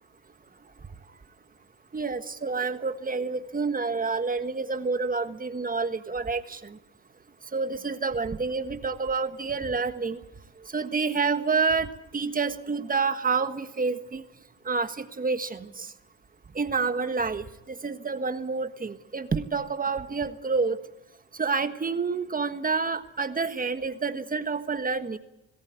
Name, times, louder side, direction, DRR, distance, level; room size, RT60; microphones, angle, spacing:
voice 1, 1.9-6.8 7.5-10.2 10.7-14.2 14.7-15.9 16.5-17.4 17.8-20.8 21.4-25.2, right 4 dB, 30° right, 10 dB, 1.5 m, -28 dB
19.0 x 16.5 x 9.4 m, 0.90 s
cardioid pair, 90°, 30 cm